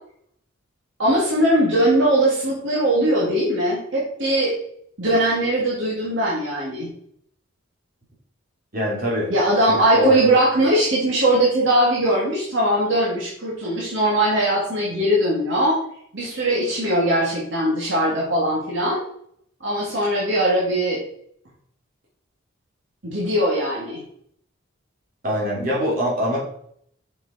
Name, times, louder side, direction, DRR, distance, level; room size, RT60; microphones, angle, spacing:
voice 1, 1.0-4.5 5.0-6.9 9.3-15.8 16.1-19.0 19.6-21.0 23.0-24.0, right 1 dB, 60° right, -6 dB, 2.6 m, -20 dB
voice 2, 8.7-9.3 9.7-10.1 25.2-26.4, equal, 45° right, -5 dB, 3.3 m, -23 dB
7.1 x 6.7 x 4.4 m, 0.67 s
head